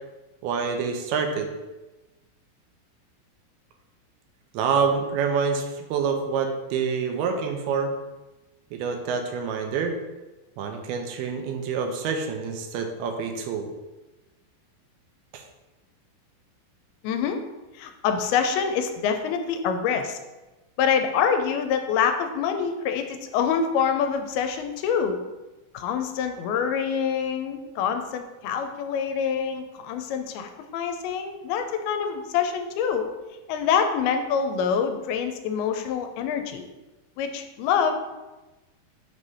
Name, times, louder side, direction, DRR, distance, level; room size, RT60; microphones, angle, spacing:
voice 1, 0.4-1.5 4.5-7.9 8.7-10.0 10.6-13.7 15.3-15.4, right 5 dB, 85° right, 4 dB, 2.6 m, -27 dB
voice 2, 17.0-17.4 17.8-20.2 20.8-25.2 25.7-33.1 33.5-36.7 37.2-38.0, left 7 dB, 85° left, 6 dB, 2.5 m, -26 dB
6.3 x 3.3 x 5.4 m, 1.1 s
omnidirectional pair, 4.4 m